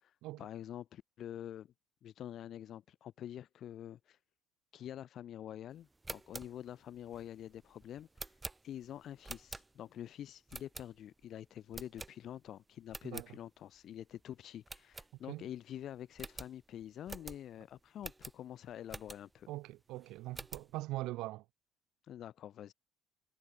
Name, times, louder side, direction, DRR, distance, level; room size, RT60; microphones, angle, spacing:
voice 1, 0.4-1.7 2.0-4.2 4.7-8.3 8.6-19.5 22.1-22.7, left 11 dB, 60° left, 5.0 m, -47 dB
sound 1, 5.9-10.0 10.5-11.2 11.7-12.5 12.8-13.3 13.8-13.9 14.1-14.2 14.7-15.6 15.8-15.9 16.2-19.5 19.9-20.7, right 2 dB, 15° right, 1.4 m, -48 dB
voice 2, 19.5-21.4, right 18 dB, 80° right, 2.5 m, -42 dB
cardioid pair, 100°, 0 cm